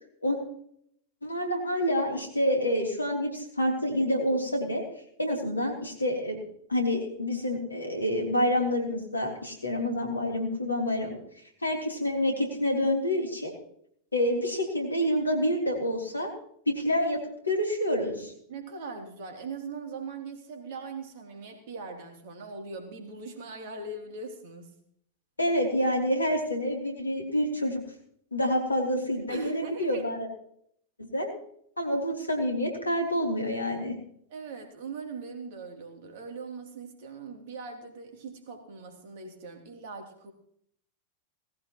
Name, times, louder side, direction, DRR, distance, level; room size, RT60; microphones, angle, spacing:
voice 1, 1.2-4.8 5.2-6.4 6.7-11.2 11.6-13.5 14.1-16.3 16.7-17.2 17.4-18.3 25.4-27.8 28.3-30.3 31.0-31.3 31.8-34.0, equal, 80° left, 2 dB, 3.4 m, -27 dB
voice 2, 18.5-24.7 29.3-30.0 34.3-40.3, right 4 dB, 50° right, 3 dB, 3.2 m, -40 dB
18.5 x 16.0 x 3.1 m, 0.69 s
figure-of-eight pair, 90°, 0 cm